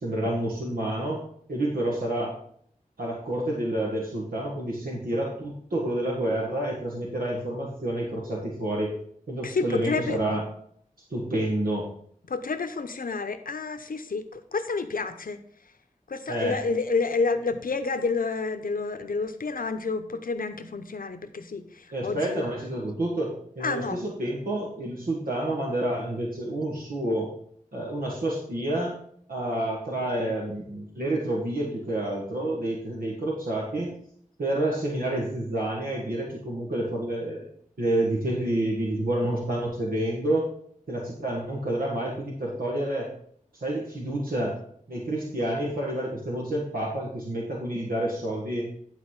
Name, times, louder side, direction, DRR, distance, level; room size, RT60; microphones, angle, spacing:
voice 1, 0.0-1.2 1.5-2.3 3.0-8.9 9.3-10.4 11.1-11.9 16.3-16.6 21.9-23.3 23.6-27.3 27.7-29.0 29.3-33.9 34.4-37.5 37.8-40.5 40.9-43.1 43.5-44.6 44.9-48.7, right 1 dB, 90° right, -3 dB, 1.6 m, -29 dB
voice 2, 9.4-10.2 12.3-15.4 16.1-22.4 23.6-24.0, left 4 dB, 80° left, 8 dB, 0.8 m, -29 dB
11.0 x 4.1 x 5.5 m, 0.64 s
wide cardioid pair, 60°, 14 cm